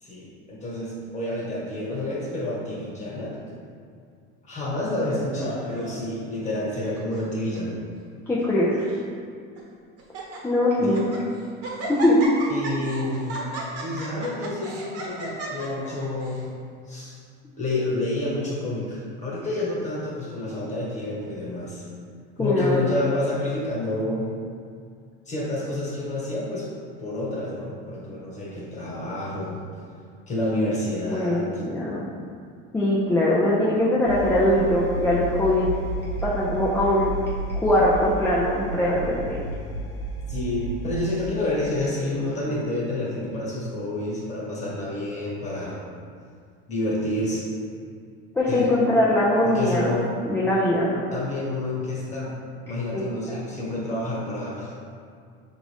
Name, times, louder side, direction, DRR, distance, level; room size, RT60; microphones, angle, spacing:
voice 1, 0.0-3.5 4.4-7.7 10.8-11.0 12.5-13.4 13.8-16.5 16.9-17.2 17.6-21.9 22.4-24.3 25.3-26.7 27.0-29.6 30.3-31.6 40.3-45.8 46.7-47.4 48.5-48.8 49.4-50.1 51.1-52.3 52.7-54.7, left 1 dB, 25° left, -6 dB, 1.3 m, -29 dB
Laughter, 5.4-6.2 6.9-7.3 7.5-7.6 8.4-9.0 9.6-9.7 10.0-10.4 10.8-11.2 11.6-16.4, right 2 dB, 55° right, 1.2 m, -35 dB
voice 2, 8.3-8.9 10.4-11.0 11.9-12.2 22.4-22.8 31.1-32.1 32.7-35.7 36.2-37.1 37.6-39.4 48.3-49.9 50.2-51.0 52.9-53.4, left 1 dB, 10° left, -7 dB, 0.4 m, -22 dB
sound 1, 34.1-41.0, right 1 dB, 75° left, 0.6 m, -32 dB
4.9 x 2.6 x 3.3 m, 2.2 s
supercardioid pair, 125°, 30 cm